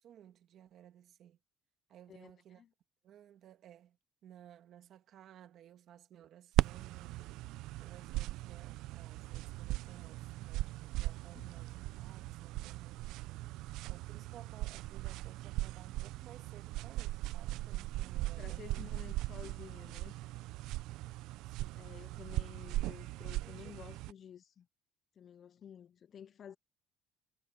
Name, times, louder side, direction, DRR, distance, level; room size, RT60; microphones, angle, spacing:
voice 1, 0.0-1.4 1.9-2.6 3.0-7.2 7.8-18.9 20.2-20.4 21.4-21.9 23.4-23.8, right 10 dB, 55° right, 1.7 m, -58 dB
voice 2, 2.1-2.7 11.3-11.5 18.4-20.2 21.8-24.7 25.2-26.6, left 8 dB, 40° left, 0.4 m, -52 dB
sound 1, 6.6-24.1, right 18 dB, 80° right, 0.5 m, -39 dB
cardioid pair, 135°, 0 cm